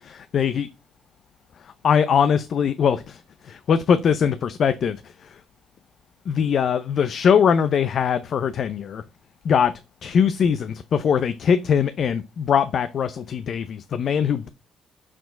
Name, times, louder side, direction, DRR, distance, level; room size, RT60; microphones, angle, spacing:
voice 1, 0.0-0.7 1.6-5.4 6.3-9.0 9.4-14.5, left 7 dB, 60° left, 0.5 m, -22 dB
6.1 x 4.6 x 5.1 m
supercardioid pair, 65°, 0 cm